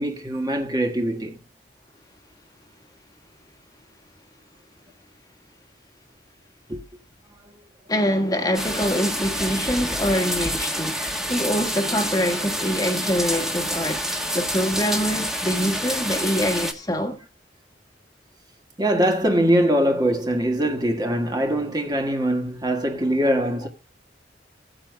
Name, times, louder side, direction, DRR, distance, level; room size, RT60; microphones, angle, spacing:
voice 1, 0.0-1.4 6.7-6.8 18.8-23.7, equal, 20° right, 1.6 m, -22 dB
voice 2, 7.9-17.2, equal, 20° left, 1.5 m, -25 dB
sound 1, 8.5-16.7, equal, 5° right, 1.5 m, -28 dB
17.0 x 8.7 x 2.2 m
head